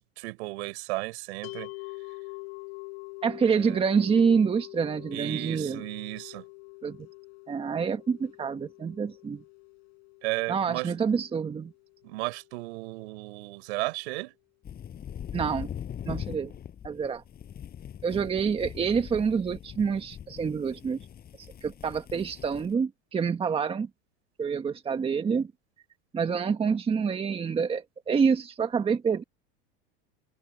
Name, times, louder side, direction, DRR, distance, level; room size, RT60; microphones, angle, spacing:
voice 1, 0.0-1.7 3.4-3.8 5.1-6.4 10.2-10.9 12.0-14.4, right 23 dB, 75° right, 7.0 m, -34 dB
sound 1, 1.4-12.6, left 28 dB, 70° left, 4.6 m, -45 dB
voice 2, 3.2-5.8 6.8-7.0 7.5-9.4 10.5-11.7 15.3-15.7 16.0-16.5 16.8-17.2 18.0-21.0 21.4-23.9 24.4-25.5 26.1-29.2, right 6 dB, 15° right, 1.5 m, -27 dB
sound 2, 14.6-22.7, left 9 dB, 25° left, 7.7 m, -41 dB
open air
supercardioid pair, 150°, 33 cm